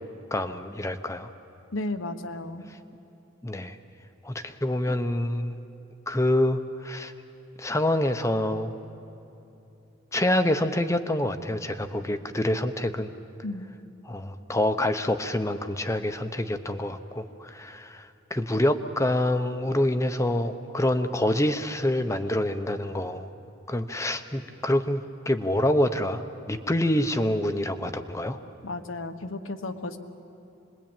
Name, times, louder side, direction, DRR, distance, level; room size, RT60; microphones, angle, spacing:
voice 1, 0.3-1.3 3.4-3.8 4.2-5.6 6.1-7.1 7.6-8.7 10.1-13.1 14.0-23.3 23.7-28.4, left 1 dB, 15° left, 8 dB, 0.8 m, -26 dB
voice 2, 1.7-2.6 13.4-13.7 28.6-30.0, left 2 dB, 85° left, 8 dB, 1.3 m, -33 dB
26.0 x 21.0 x 8.9 m, 2.9 s
head